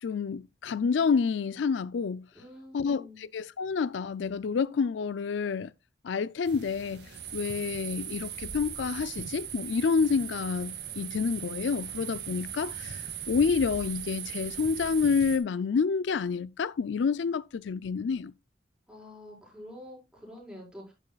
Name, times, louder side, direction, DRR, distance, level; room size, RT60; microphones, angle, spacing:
voice 1, 0.0-2.3 2.7-5.7 6.0-18.3, left 5 dB, 80° left, 0.4 m, -28 dB
voice 2, 2.3-3.2 18.9-20.9, left 1 dB, 5° right, 5.1 m, -47 dB
sound 1, 6.4-15.4, right 8 dB, 65° right, 2.0 m, -39 dB
10.5 x 10.5 x 2.3 m
head